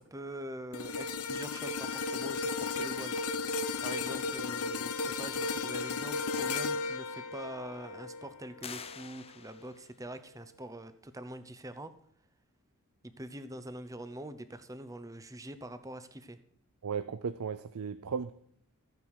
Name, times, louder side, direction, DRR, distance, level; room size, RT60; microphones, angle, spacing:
voice 1, 0.0-3.1 3.4-3.6 3.8-11.9 13.2-16.4, right 1 dB, 15° right, 11 dB, 0.8 m, -44 dB
sound 1, 0.7-9.1 9.5-9.7, left 4 dB, 90° left, 0.9 m, -35 dB
sound 2, 8.6-10.0, left 7 dB, 25° left, 0.5 m, -46 dB
voice 2, 16.8-18.3, right 6 dB, 85° right, 13 dB, 0.5 m, -35 dB
14.0 x 9.0 x 4.8 m, 0.68 s
head